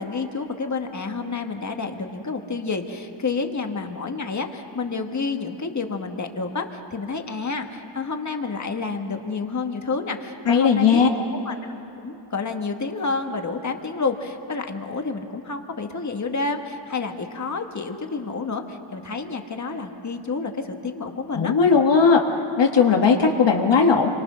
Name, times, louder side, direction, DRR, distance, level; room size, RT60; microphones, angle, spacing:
voice 1, 0.0-11.5 12.0-21.5, left 4 dB, 35° left, 5 dB, 1.6 m, -29 dB
voice 2, 10.4-11.1 21.3-22.2 22.6-24.1, left 5 dB, 60° left, 2 dB, 1.6 m, -17 dB
28.5 x 24.0 x 6.3 m, 3.0 s
wide cardioid pair, 140°, 48 cm